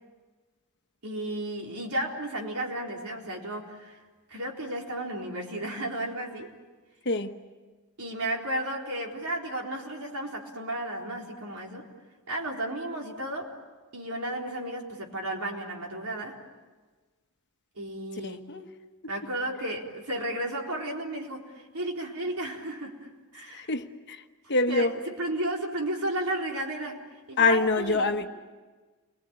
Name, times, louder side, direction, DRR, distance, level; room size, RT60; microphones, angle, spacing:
voice 1, 1.0-4.0 4.3-6.5 8.0-11.8 12.3-13.5 13.9-16.4 17.8-18.5 19.1-23.1 23.3-23.7 24.7-28.1, right 1 dB, 80° right, 4.0 m, -33 dB
voice 2, 7.0-7.4 18.2-18.7 23.5-24.2 24.5-24.9 27.4-28.3, left 3 dB, 50° left, 1.2 m, -25 dB
30.0 x 22.0 x 8.9 m
head